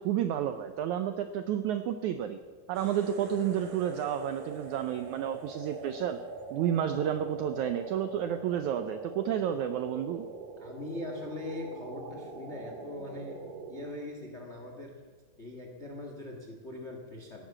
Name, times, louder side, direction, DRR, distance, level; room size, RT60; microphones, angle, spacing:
voice 1, 0.0-2.4 2.7-6.2 6.5-10.2, right 10 dB, 80° right, 9 dB, 1.7 m, -31 dB
sound 1, 2.7-13.9, right 3 dB, 65° right, 3.2 m, -43 dB
voice 2, 10.6-13.4 13.7-15.0 15.4-17.5, left 2 dB, 40° left, 2 dB, 0.9 m, -41 dB
16.0 x 11.5 x 7.4 m, 1.5 s
omnidirectional pair, 4.2 m